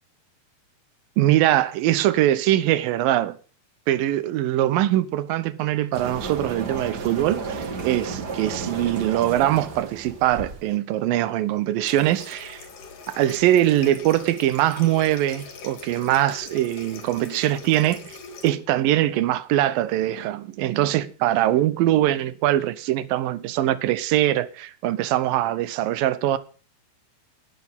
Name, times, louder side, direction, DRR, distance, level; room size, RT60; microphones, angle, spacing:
voice 1, 1.2-3.4 3.9-12.7 13.1-18.2 18.4-26.4, right 13 dB, 70° right, 2.4 m, -22 dB
sound 1, 5.9-10.8, right 4 dB, 45° right, 1.3 m, -33 dB
Water tap faucet, 11.8-18.5, left 5 dB, 60° left, 3.7 m, -42 dB
18.0 x 6.5 x 7.3 m
omnidirectional pair, 4.6 m